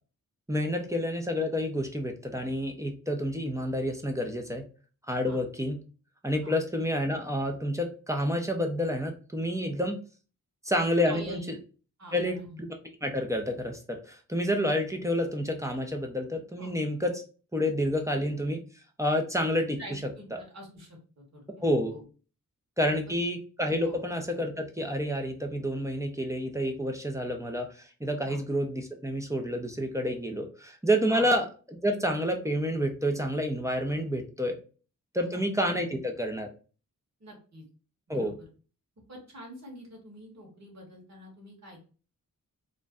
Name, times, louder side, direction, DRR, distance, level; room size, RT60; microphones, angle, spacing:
voice 1, 0.5-4.6 5.1-5.8 6.2-10.0 10.6-11.6 12.1-12.7 13.0-17.2 17.5-18.6 19.0-20.0 21.6-21.9 22.8-34.6 35.1-36.5 38.1-38.3, equal, 10° right, 2 dB, 0.5 m, -29 dB
voice 2, 11.0-11.5 12.0-12.6 16.6-16.7 19.8-21.6 21.9-22.0 23.8-24.0 28.2-28.4 31.1-31.3 35.1-35.4 37.2-37.6 38.1-38.3 39.1-41.8, equal, 55° right, -1 dB, 1.2 m, -46 dB
2.5 x 2.1 x 3.4 m, 0.37 s
wide cardioid pair, 95°, 33 cm